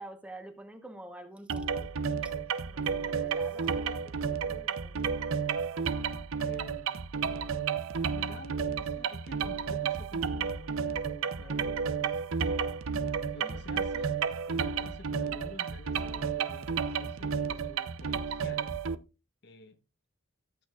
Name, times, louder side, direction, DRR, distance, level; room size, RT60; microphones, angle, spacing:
voice 1, 0.0-5.2 11.3-11.7 13.4-13.6, right 1 dB, 5° right, 1.1 m, -49 dB
sound 1, 1.5-19.0, right 6 dB, 85° right, 0.7 m, -32 dB
voice 2, 6.4-7.0 7.9-12.1 12.4-12.5 13.3-14.1 14.5-18.7 19.4-19.8, left 2 dB, 55° left, 1.1 m, -49 dB
14.0 x 8.6 x 2.4 m
head